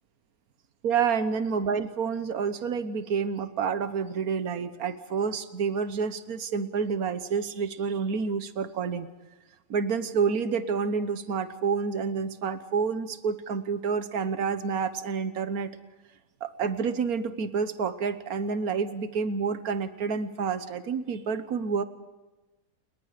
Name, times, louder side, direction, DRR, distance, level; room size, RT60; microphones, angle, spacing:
voice 1, 0.8-9.1 9.7-15.7 16.4-21.8, right 6 dB, 80° right, 11 dB, 1.6 m, -29 dB
30.0 x 21.0 x 5.1 m, 1.1 s
omnidirectional pair, 1.5 m